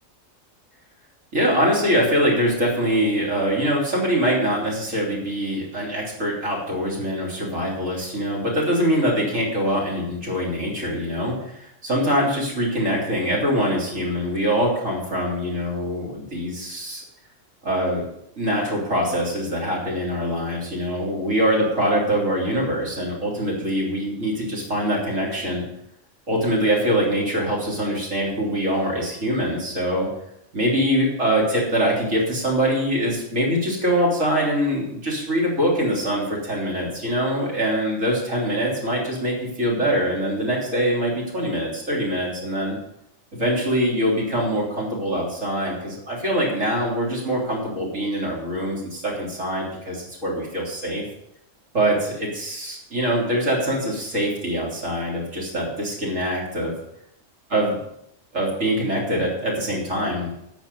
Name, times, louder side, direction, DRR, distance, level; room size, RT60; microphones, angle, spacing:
voice 1, 1.3-17.0 17.6-18.0 18.4-25.6 26.3-30.1 30.5-42.8 43.3-51.0 51.7-56.7 57.5-57.8 58.3-60.3, equal, 85° right, -4 dB, 3.9 m, -23 dB
13.0 x 7.4 x 5.4 m, 0.79 s
omnidirectional pair, 1.3 m